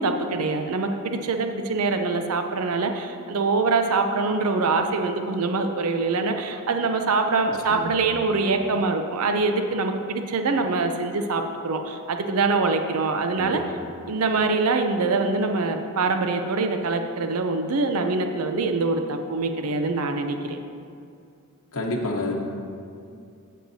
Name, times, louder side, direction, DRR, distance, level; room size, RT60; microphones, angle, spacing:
voice 1, 0.0-13.6 14.1-20.6, right 3 dB, 70° right, 5 dB, 0.6 m, -24 dB
voice 2, 7.5-8.0 13.4-13.6 21.7-22.3, left 2 dB, 65° left, -2 dB, 1.0 m, -29 dB
15.5 x 6.5 x 2.7 m, 2.4 s
head